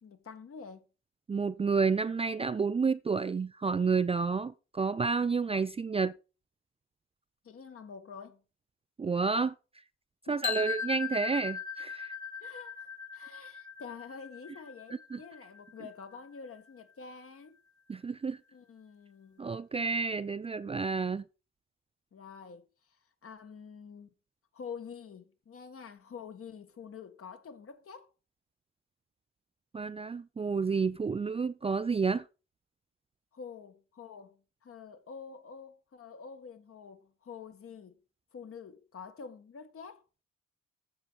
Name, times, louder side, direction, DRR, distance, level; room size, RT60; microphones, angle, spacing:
voice 1, 0.0-0.8 7.4-8.4 10.3-10.5 12.4-17.6 18.5-19.6 22.1-22.7 23.2-24.1 24.5-28.1 33.3-38.0 38.3-40.0, left 6 dB, 45° left, 1.7 m, -47 dB
voice 2, 1.3-6.1 9.0-9.5 10.3-12.2 15.1-15.2 17.9-18.4 19.4-21.2 29.7-32.2, right 5 dB, 20° right, 0.5 m, -30 dB
sound 1, 10.4-16.4, left 6 dB, 90° left, 1.5 m, -39 dB
14.0 x 5.6 x 4.1 m
hypercardioid pair, 45°, 32 cm